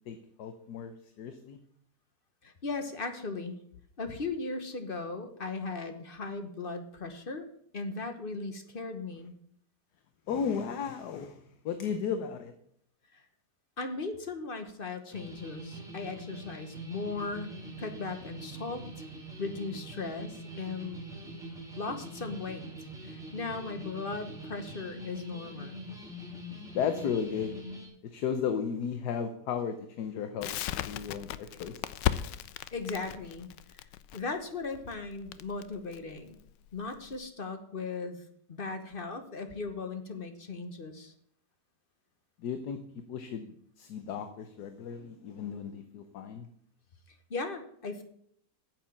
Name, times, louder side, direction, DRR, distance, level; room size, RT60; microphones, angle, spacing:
voice 1, 0.1-1.6 10.3-12.5 26.7-27.6 28.0-30.5 30.8-32.1 42.4-42.8 43.1-46.5, left 7 dB, 70° left, 8 dB, 1.4 m, -35 dB
voice 2, 2.4-3.6 4.0-7.5 7.7-9.4 13.1-13.2 13.8-19.0 19.4-21.0 21.8-22.7 23.0-25.8 32.7-33.8 34.1-36.4 36.7-38.2 38.5-41.1 47.3-48.0, left 3 dB, 35° left, 8 dB, 1.1 m, -37 dB
sound 1, 15.1-27.9, right 1 dB, ahead, 3.0 m, -44 dB
Crackle, 30.4-37.2, left 13 dB, 90° left, 1.3 m, -36 dB
9.3 x 7.7 x 7.1 m, 0.67 s
omnidirectional pair, 1.9 m